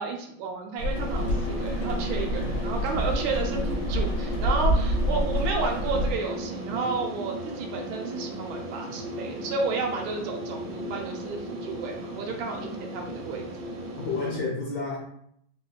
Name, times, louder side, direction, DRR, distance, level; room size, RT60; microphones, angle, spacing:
voice 1, 0.0-13.5, right 4 dB, 90° right, 2 dB, 1.4 m, -32 dB
Rain, 0.8-6.1, left 1 dB, 80° left, 1.5 m, -27 dB
sound 1, 0.9-14.4, right 1 dB, 70° right, 1.0 m, -36 dB
voice 2, 14.0-15.0, left 3 dB, 60° left, -4 dB, 1.0 m, -31 dB
4.0 x 2.2 x 2.4 m, 0.71 s
omnidirectional pair, 2.2 m